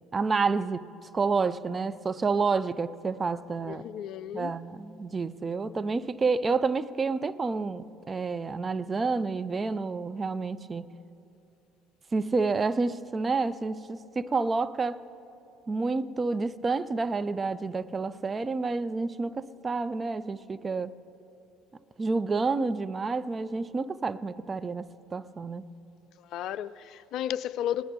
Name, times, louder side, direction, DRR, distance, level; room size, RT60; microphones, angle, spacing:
voice 1, 0.1-3.8 4.3-10.9 12.1-15.0 15.7-21.0 22.0-25.7, right 4 dB, 25° right, 0.4 m, -29 dB
voice 2, 3.7-4.5 26.2-27.8, left 10 dB, 55° left, 0.3 m, -33 dB
17.5 x 10.5 x 5.3 m
figure-of-eight pair, 60°, 0 cm